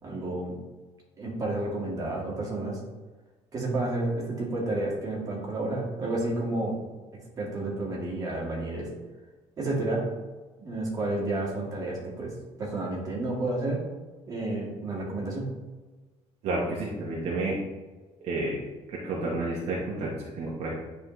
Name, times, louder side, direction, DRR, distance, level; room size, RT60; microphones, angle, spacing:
voice 1, 0.0-0.6 1.2-2.8 3.5-6.8 7.4-8.9 9.6-10.0 10.6-13.8 14.3-15.5, right 2 dB, 25° right, -3 dB, 1.8 m, -30 dB
voice 2, 16.4-17.6 18.2-18.6 18.9-20.7, right 2 dB, 55° right, -4 dB, 1.2 m, -30 dB
9.8 x 4.3 x 3.1 m, 1.3 s
cardioid pair, 180°, 13 cm